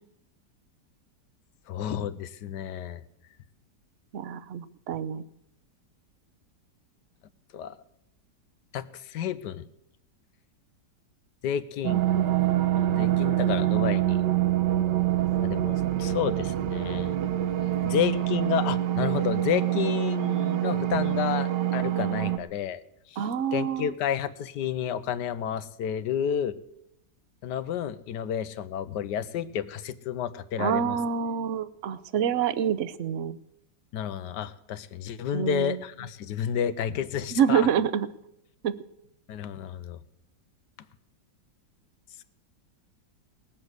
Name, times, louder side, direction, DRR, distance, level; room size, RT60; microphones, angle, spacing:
voice 1, 1.7-3.0 7.5-7.8 8.7-9.7 11.4-12.0 12.8-14.2 15.4-17.1 17.8-22.8 23.1-26.6 27.4-31.0 33.9-37.7 39.3-40.0 42.2-42.3, left 9 dB, 75° left, 14 dB, 1.4 m, -31 dB
voice 2, 4.1-5.2 11.9-12.7 23.2-23.9 30.6-33.4 35.3-35.8 37.4-38.1 38.6-38.7, right 8 dB, 60° right, 16 dB, 0.8 m, -27 dB
sound 1, 11.8-22.4, right 13 dB, 80° right, 1.5 m, -25 dB
19.5 x 7.4 x 8.0 m, 0.81 s
omnidirectional pair, 1.9 m